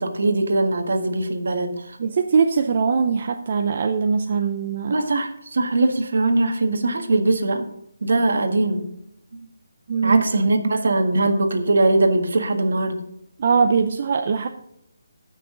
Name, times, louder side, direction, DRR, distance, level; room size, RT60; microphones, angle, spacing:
voice 1, 0.0-1.7 4.9-7.7 8.0-8.8 10.0-13.0, right 2 dB, 55° right, 6 dB, 1.6 m, -21 dB
voice 2, 2.0-5.0 9.9-10.2 13.4-14.5, right 5 dB, 30° right, 5 dB, 0.5 m, -21 dB
16.0 x 6.2 x 3.8 m, 0.77 s
hypercardioid pair, 175°, 0 cm